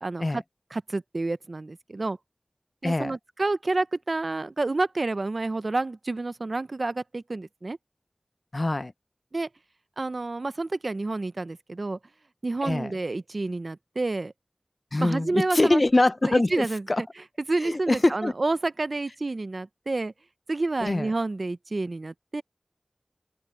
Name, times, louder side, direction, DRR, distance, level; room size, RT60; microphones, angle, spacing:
voice 1, 0.0-0.4 0.7-2.2 2.8-7.8 9.3-9.5 10.0-12.0 12.4-14.3 15.0-15.8 16.3-17.1 17.5-20.1 20.5-22.4, right 2 dB, 75° right, 0.5 m, -29 dB
voice 2, 2.8-3.1 8.5-8.9 12.6-12.9 14.9-17.0 17.6-18.3 20.8-21.1, left 2 dB, 50° left, 0.5 m, -24 dB
open air
wide cardioid pair, 50°, 0 cm